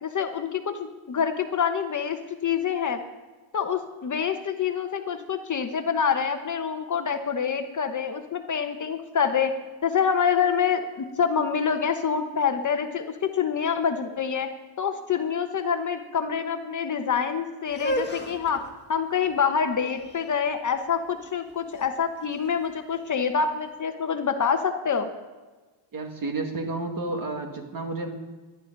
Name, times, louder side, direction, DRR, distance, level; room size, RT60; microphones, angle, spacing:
voice 1, 0.0-2.2 2.4-3.0 3.5-9.5 9.8-14.5 14.8-18.6 18.9-25.1, left 7 dB, 35° left, 6 dB, 1.1 m, -26 dB
sound 1, 17.7-23.6, equal, 20° left, 1.6 m, -36 dB
voice 2, 25.9-28.1, right 2 dB, 40° right, 3 dB, 2.3 m, -31 dB
18.0 x 12.0 x 4.0 m, 1.3 s
cardioid pair, 115°, 50 cm